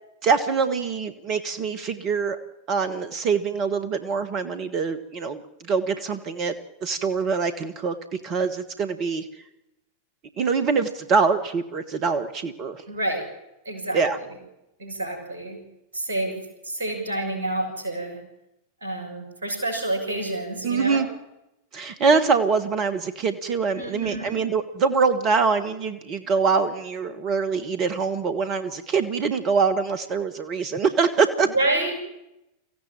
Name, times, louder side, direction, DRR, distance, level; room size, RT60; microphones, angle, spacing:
voice 1, 0.2-2.4 2.7-5.4 5.7-6.5 6.8-7.9 8.2-9.2 10.4-12.8 13.9-14.2 20.6-21.1 21.7-31.5, right 5 dB, 35° right, 11 dB, 1.4 m, -24 dB
voice 2, 12.9-13.3 13.6-14.3 14.8-15.6 15.9-18.2 18.8-21.1 23.7-24.4 31.4-31.9, right 2 dB, 65° right, 4 dB, 6.4 m, -29 dB
24.0 x 15.5 x 8.8 m, 0.92 s
figure-of-eight pair, 90°, 0 cm